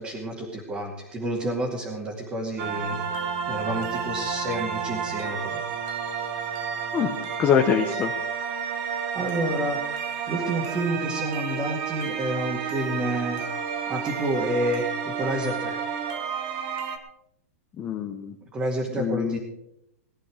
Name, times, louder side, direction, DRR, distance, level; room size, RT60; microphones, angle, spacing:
voice 1, 0.0-3.0 3.5-5.6 9.1-10.0 10.3-13.4 13.9-15.8 18.5-19.4, right 1 dB, 15° right, -2 dB, 2.3 m, -29 dB
sound 1, 2.6-17.0, right 7 dB, 40° right, 1.7 m, -31 dB
voice 2, 6.9-8.1 17.8-18.3 18.9-19.4, left 8 dB, 20° left, 2 dB, 1.0 m, -24 dB
19.0 x 10.0 x 5.0 m, 0.79 s
hypercardioid pair, 155°, 8 cm